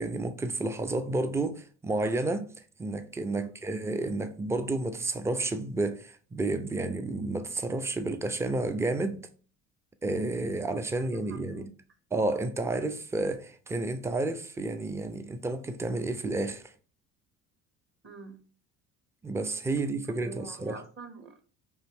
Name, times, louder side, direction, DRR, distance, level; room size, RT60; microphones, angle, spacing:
voice 1, 0.0-2.5 2.8-9.3 10.0-11.7 12.1-16.7 19.2-20.8, right 2 dB, 10° right, 0.3 m, -31 dB
voice 2, 11.3-11.7 18.0-18.4 20.2-21.4, right 4 dB, 30° right, 0.8 m, -45 dB
3.0 x 2.6 x 3.4 m
hypercardioid pair, 70°, 39 cm